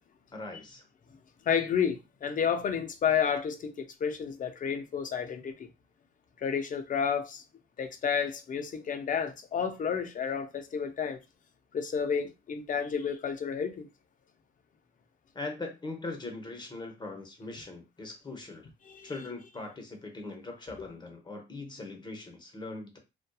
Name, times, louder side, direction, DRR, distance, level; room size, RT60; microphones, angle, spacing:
voice 1, 0.3-0.8 15.3-18.7 19.0-23.0, left 2 dB, 20° left, 0.8 m, -41 dB
voice 2, 1.4-5.7 6.4-7.4 7.8-11.2 11.7-13.9 18.8-19.1, left 7 dB, 40° left, 0.5 m, -31 dB
2.6 x 2.2 x 2.2 m
cardioid pair, 90°, 20 cm